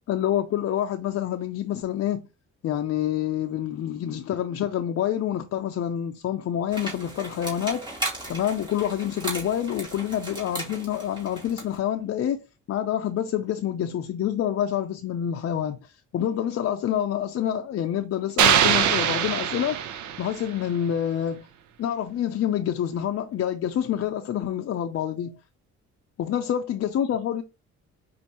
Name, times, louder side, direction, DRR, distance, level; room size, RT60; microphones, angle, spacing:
voice 1, 0.1-2.2 2.6-7.9 8.3-12.4 12.7-19.8 20.2-21.5 21.8-25.4 26.2-27.4, left 10 dB, 50° left, 0.5 m, -27 dB
sound 1, 6.7-11.8, right 1 dB, 15° right, 2.1 m, -36 dB
sound 2, 18.4-20.5, right 9 dB, 75° right, 0.6 m, -22 dB
5.2 x 2.5 x 2.9 m
cardioid pair, 90°, 30 cm